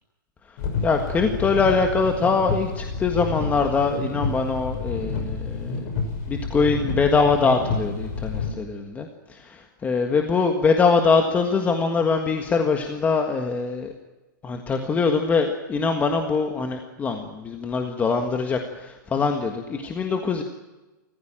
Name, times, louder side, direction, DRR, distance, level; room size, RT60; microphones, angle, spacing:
sound 1, 0.6-8.5, left 4 dB, 50° left, 6.3 m, -29 dB
voice 1, 0.8-5.8 6.3-13.9 14.4-20.4, left 4 dB, 15° left, 4 dB, 1.6 m, -23 dB
27.0 x 15.0 x 8.9 m, 1.1 s
hypercardioid pair, 150°, 11 cm